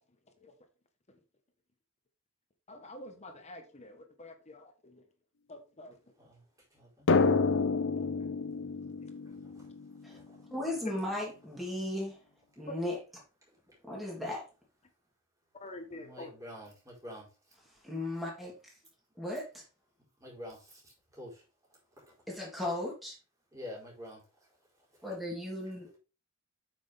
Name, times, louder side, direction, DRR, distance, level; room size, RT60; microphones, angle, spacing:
voice 1, 2.7-5.0 5.5-6.0 8.0-8.1 15.5-16.3, left 1 dB, 30° left, 1.2 m, -48 dB
voice 2, 6.7-7.1 9.2-9.7 10.1-10.4 13.7-13.8 15.9-17.3 20.2-21.4 22.0-22.2 23.5-24.2, left 1 dB, 15° right, 4.2 m, -48 dB
Drum, 7.1-10.4, left 4 dB, 60° left, 0.6 m, -29 dB
voice 3, 10.5-12.2 12.6-13.0 13.8-14.5 17.8-18.7 19.2-19.6 22.3-23.2 25.0-26.0, left 1 dB, ahead, 3.2 m, -36 dB
8.3 x 6.2 x 3.5 m
head